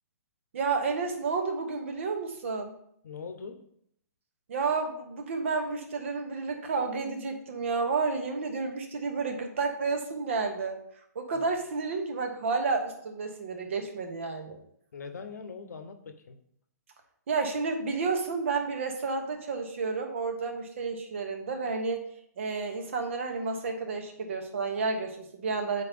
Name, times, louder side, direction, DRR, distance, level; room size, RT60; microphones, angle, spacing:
voice 1, 0.5-2.7 4.5-10.8 11.1-14.6 17.3-22.1 22.4-25.8, right 4 dB, 45° right, 5 dB, 1.1 m, -31 dB
voice 2, 3.0-3.6 11.3-11.5 14.9-16.4, left 5 dB, 70° left, 8 dB, 0.9 m, -42 dB
8.6 x 4.3 x 3.5 m, 0.70 s
hypercardioid pair, 170°, 9 cm